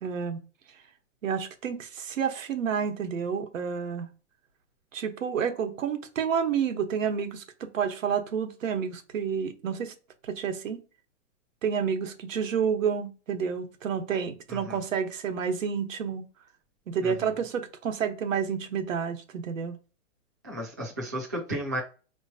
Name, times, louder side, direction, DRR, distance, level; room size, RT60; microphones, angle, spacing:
voice 1, 0.0-0.4 1.2-4.1 4.9-9.9 10.2-10.8 11.6-16.2 16.9-19.8, right 7 dB, 85° right, 1.1 m, -29 dB
voice 2, 17.0-17.3 20.4-21.8, equal, 15° right, 0.4 m, -34 dB
5.0 x 3.0 x 2.7 m
hypercardioid pair, 180°, 38 cm